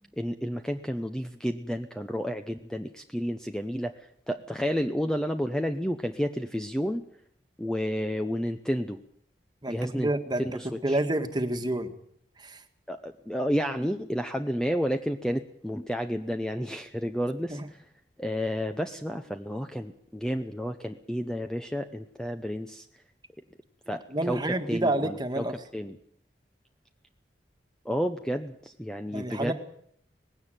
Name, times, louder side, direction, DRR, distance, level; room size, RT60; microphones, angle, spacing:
voice 1, 0.2-7.0 7.6-9.0 9.7-10.1 10.4-11.0 12.9-17.8 18.2-22.9 23.9-25.5 25.7-26.0 27.8-29.5, equal, 5° left, 7 dB, 0.8 m, -31 dB
voice 2, 9.6-10.5 10.8-11.9 12.4-12.6 17.5-17.6 24.1-25.6 29.1-29.5, right 1 dB, 25° right, 7 dB, 1.7 m, -28 dB
19.5 x 16.5 x 9.1 m, 0.70 s
head